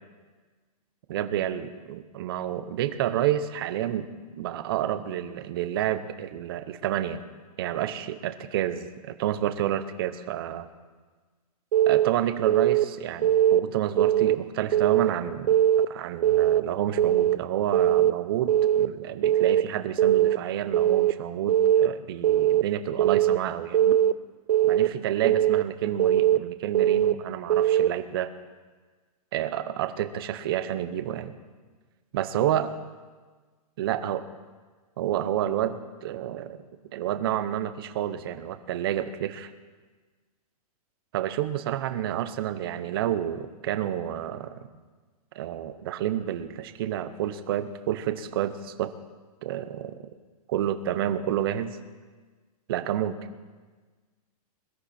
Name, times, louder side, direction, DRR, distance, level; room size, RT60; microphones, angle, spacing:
voice 1, 1.1-4.1 4.4-7.2 7.6-10.7 11.9-15.5 15.9-24.0 24.6-28.3 29.3-31.3 32.1-32.7 33.8-34.2 35.0-36.6 36.9-39.5 41.1-44.5 45.3-48.9 49.4-50.1 50.5-51.8 52.7-53.2, right 11 dB, 40° right, 11 dB, 0.9 m, -29 dB
Keyboard (musical) / Alarm, 11.7-12.1 12.5-12.8 13.2-13.6 14.0-14.4 14.7-15.1 15.5-15.9 16.2-16.6 17.0-17.4 17.7-18.1 18.5-18.9 19.2-19.6 20.0-20.4 20.7-21.1 21.5-21.9 22.2-22.6 23.0-23.4 23.7-24.1 24.5-24.9 25.2-25.6 26.0-26.4 26.7-27.1 27.5-27.9, right 11 dB, 80° right, 0.6 m, -20 dB
21.5 x 13.0 x 4.3 m, 1.4 s
hypercardioid pair, 170°, 20 cm